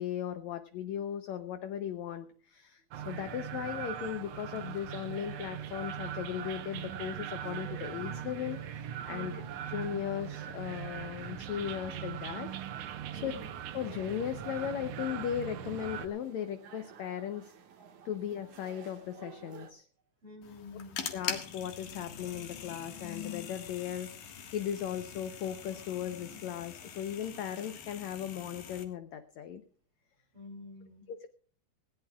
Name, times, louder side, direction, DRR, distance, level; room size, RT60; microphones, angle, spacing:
voice 1, 0.0-9.4 9.7-12.5 12.8-13.3 13.7-17.5 18.0-19.9 21.1-29.6 31.1-31.3, left 10 dB, 75° left, 9 dB, 1.7 m, -37 dB
sound 1, 2.9-16.1, right 10 dB, 90° right, 1.4 m, -40 dB
voice 2, 9.1-9.5 13.1-13.5 20.2-21.0 30.3-31.3, left 1 dB, 35° right, 4 dB, 3.9 m, -48 dB
sound 2, 13.2-19.7, right 7 dB, 60° right, 2.8 m, -54 dB
sound 3, 20.4-28.8, left 7 dB, 60° left, 2.9 m, -43 dB
20.0 x 17.0 x 2.4 m, 0.43 s
omnidirectional pair, 4.3 m